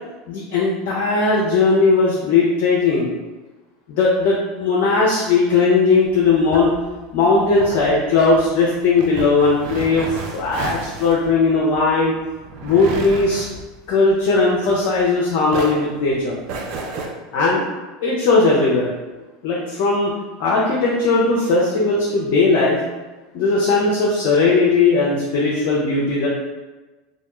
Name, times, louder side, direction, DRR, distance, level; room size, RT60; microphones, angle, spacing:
voice 1, 0.3-3.1 3.9-6.7 7.1-12.1 12.6-13.5 13.9-16.4 17.3-17.6 18.0-18.9 19.4-20.1 20.4-22.8 23.3-26.3, left 3 dB, 60° left, -4 dB, 0.5 m, -18 dB
sound 1, 6.1-15.2 15.5-17.1, right 3 dB, 55° right, 0.4 m, -32 dB
2.3 x 2.1 x 2.9 m, 1.2 s
hypercardioid pair, 85°, 0 cm